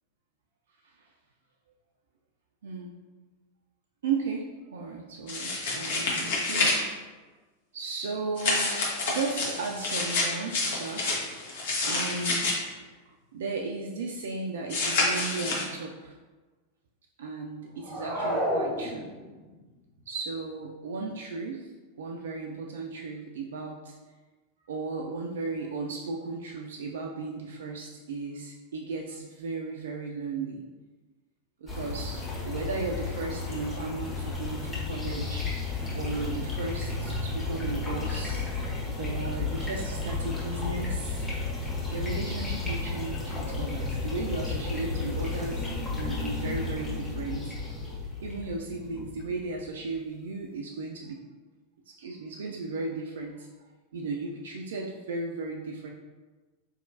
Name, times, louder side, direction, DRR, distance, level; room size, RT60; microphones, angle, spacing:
voice 1, 2.6-2.9 4.0-6.7 7.7-8.8 9.1-11.5 11.8-16.1 17.2-19.1 20.1-21.7 22.0-24.0 24.7-30.7 31.6-38.5 39.0-41.3 41.9-47.9 48.2-51.2 51.9-53.5 53.9-55.9, right 4 dB, 60° right, 0 dB, 0.3 m, -35 dB
sound 1, 5.3-6.8 8.4-12.5 14.7-15.6, left 3 dB, 55° left, 0.9 m, -28 dB
sound 2, 17.8-19.5, equal, 20° right, 0.8 m, -30 dB
sound 3, 31.7-49.8, left 3 dB, 10° left, 1.2 m, -33 dB
4.1 x 3.0 x 2.7 m, 1.3 s
figure-of-eight pair, 90°, 0 cm